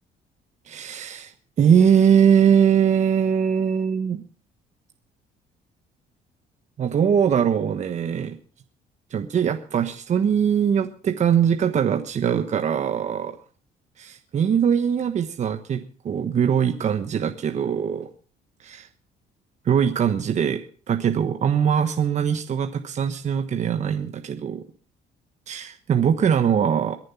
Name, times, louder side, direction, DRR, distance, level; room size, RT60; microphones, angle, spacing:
voice 1, 0.7-1.3 1.6-4.2 6.8-8.4 9.1-13.3 14.0-18.1 18.6-18.9 19.6-20.6 20.9-24.6 25.5-27.0, right 8 dB, 45° right, 7 dB, 1.2 m, -21 dB
22.5 x 7.6 x 5.9 m, 0.41 s
cardioid pair, 110°, 17 cm